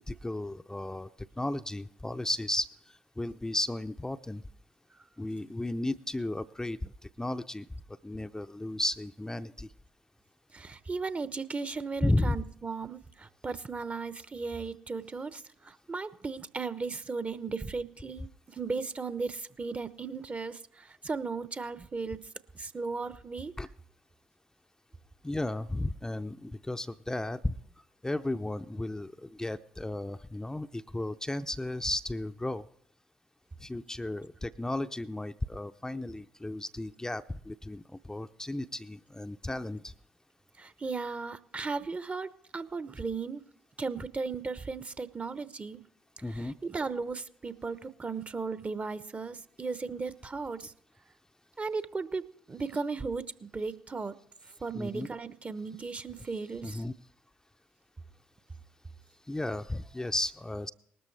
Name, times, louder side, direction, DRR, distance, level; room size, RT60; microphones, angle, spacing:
voice 1, 0.1-1.1 1.4-4.4 5.2-7.7 8.0-9.7 12.0-12.4 23.6-23.7 25.2-27.6 28.0-32.6 33.6-39.9 46.2-46.6 54.7-55.1 56.6-56.9 59.3-60.7, left 1 dB, 10° left, 8 dB, 0.6 m, -34 dB
voice 2, 10.5-22.2 22.5-23.5 40.6-43.4 43.8-45.8 46.3-50.7 51.6-54.1 54.6-56.8, right 4 dB, 30° right, 15 dB, 0.9 m, -36 dB
19.5 x 13.5 x 3.3 m, 0.72 s
figure-of-eight pair, 45°, 5 cm